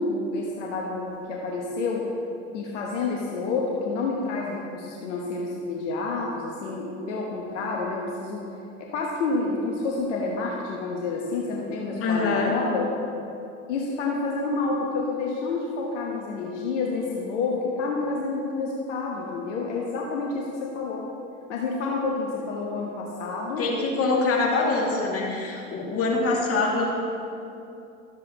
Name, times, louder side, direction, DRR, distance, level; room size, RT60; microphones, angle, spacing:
voice 1, 0.0-2.1 2.5-8.4 8.8-12.9 13.7-21.0 21.5-23.7, left 3 dB, 80° left, -2 dB, 1.1 m, -29 dB
voice 2, 12.0-12.6 23.6-26.9, left 3 dB, 40° left, -2 dB, 2.3 m, -24 dB
12.5 x 7.5 x 2.9 m, 2.7 s
hypercardioid pair, 80°, 36 cm